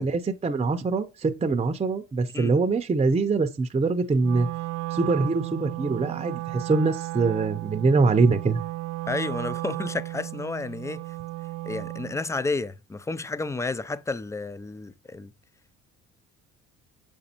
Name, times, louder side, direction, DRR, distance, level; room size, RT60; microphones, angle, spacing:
voice 1, 0.0-4.5 4.9-8.6, right 4 dB, 20° right, 0.7 m, -23 dB
Wind instrument woodwind instrument, 4.2-12.2, right 18 dB, 60° right, 0.4 m, -34 dB
voice 2, 9.1-11.0 11.6-15.3, left 3 dB, 10° left, 0.4 m, -31 dB
6.4 x 5.3 x 2.9 m
supercardioid pair, 70°, 32 cm